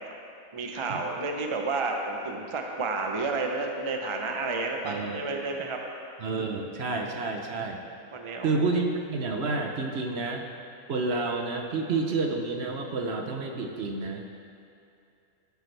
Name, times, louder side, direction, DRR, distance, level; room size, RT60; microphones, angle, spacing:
voice 1, 0.5-5.8 8.1-8.7, right 3 dB, 35° right, 2 dB, 0.5 m, -31 dB
voice 2, 4.8-5.2 6.2-7.8 8.4-10.4 10.9-14.3, right 3 dB, 55° right, 2 dB, 0.9 m, -29 dB
13.0 x 8.2 x 3.3 m, 2.5 s
omnidirectional pair, 1.5 m